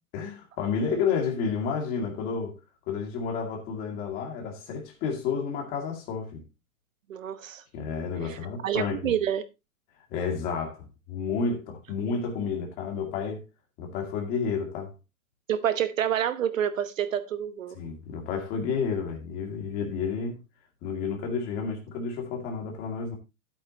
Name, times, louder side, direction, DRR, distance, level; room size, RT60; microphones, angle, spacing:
voice 1, 0.1-2.6 2.9-6.4 7.7-9.1 10.1-13.4 13.8-14.9 17.7-20.4 20.8-23.1, left 5 dB, 20° left, 2.2 m, -31 dB
voice 2, 7.1-7.6 8.2-8.4 8.6-9.4 15.5-17.8, right 10 dB, 60° right, 1.0 m, -28 dB
11.5 x 8.7 x 2.8 m
hypercardioid pair, 170°, 44 cm